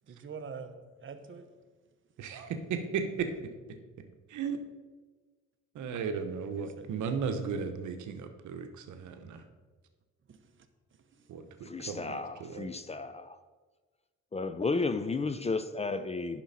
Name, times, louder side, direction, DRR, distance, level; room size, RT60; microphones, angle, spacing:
voice 1, 0.1-1.5 6.6-7.0 10.3-10.7 11.1-11.3, right 5 dB, 40° right, 1.0 m, -45 dB
voice 2, 2.2-3.5 4.3-4.6 5.7-9.5 11.3-12.7, right 6 dB, 75° right, 1.0 m, -35 dB
voice 3, 11.7-13.4 14.3-16.4, left 3 dB, 20° left, 0.5 m, -33 dB
10.0 x 6.1 x 4.2 m
cardioid pair, 90°, 30 cm